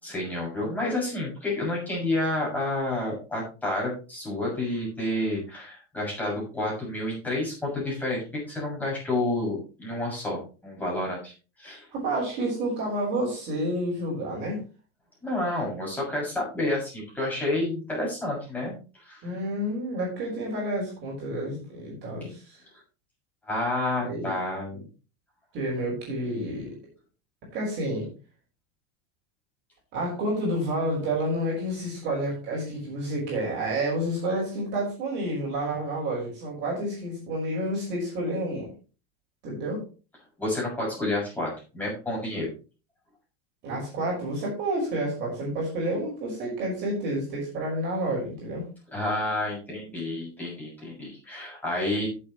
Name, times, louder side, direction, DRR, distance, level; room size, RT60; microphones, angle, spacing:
voice 1, 0.0-11.3 11.6-11.9 15.2-19.3 23.5-24.8 40.4-42.5 48.9-52.1, left 1 dB, 5° left, -4 dB, 6.8 m, -30 dB
voice 2, 11.9-14.6 19.2-22.6 24.0-24.4 24.7-24.8 25.5-26.7 27.5-28.1 29.9-38.7 39.4-39.8 43.6-48.6, right 1 dB, 30° right, -3 dB, 5.8 m, -29 dB
16.5 x 7.7 x 3.2 m, 0.34 s
supercardioid pair, 175°, 34 cm